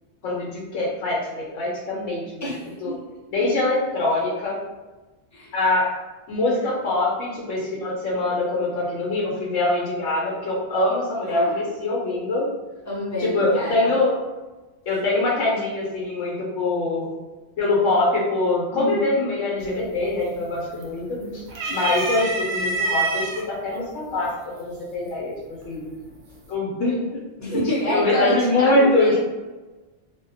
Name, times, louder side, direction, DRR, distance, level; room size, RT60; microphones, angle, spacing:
voice 1, 0.2-2.5 2.8-2.9 3.3-4.6 5.5-5.9 6.3-12.5 13.2-14.1 14.9-17.1 17.6-21.0 21.3-21.4 21.7-24.3 24.6-25.3 25.6-25.9 26.5-27.1 27.5-29.1, left 2 dB, 90° left, -4 dB, 1.0 m, -23 dB
voice 2, 2.4-3.0 5.3-5.5 11.3-11.6 12.8-13.9 18.7-19.3 21.1-21.5 27.4-29.2, equal, 20° left, -7 dB, 0.5 m, -28 dB
sound 1, 19.6-20.0 20.4-21.1 21.5-23.4 24.3-24.4 25.6-26.1, right 3 dB, 65° right, 0.8 m, -26 dB
2.3 x 2.0 x 2.7 m, 1.2 s
omnidirectional pair, 1.3 m